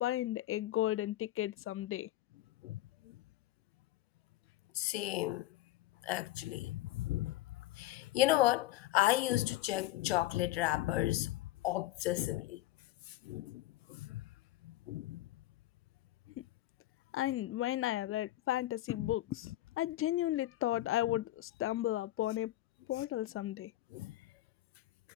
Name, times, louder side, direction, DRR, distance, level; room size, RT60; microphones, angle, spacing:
voice 1, 0.0-2.1 16.4-16.5 17.1-19.5 19.8-22.5 22.9-23.7, left 14 dB, 35° left, 7.5 m, -34 dB
voice 2, 4.7-5.5 6.0-7.4 7.8-11.4 11.6-12.6 13.1-13.6 13.9-14.2 14.6-15.2 19.0-19.1 23.9-24.1, left 17 dB, 60° left, 5.0 m, -32 dB
figure-of-eight pair, 95°, 36 cm